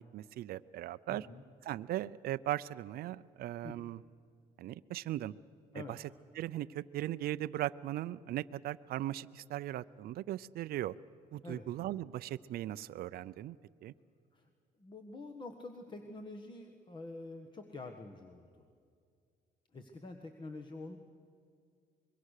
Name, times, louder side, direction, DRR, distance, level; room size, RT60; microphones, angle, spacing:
voice 1, 0.0-1.3 1.7-4.0 4.6-5.3 5.9-6.0 6.4-11.0 11.3-13.6 13.8-13.9, right 14 dB, 65° right, 15 dB, 0.5 m, -38 dB
voice 2, 1.1-1.4 3.6-3.8 5.7-6.0 11.4-11.7 14.3-14.5 14.8-18.7 19.7-21.0, left 2 dB, 25° left, 4 dB, 1.5 m, -47 dB
25.0 x 22.5 x 6.6 m, 2.2 s
cardioid pair, 110°, 17 cm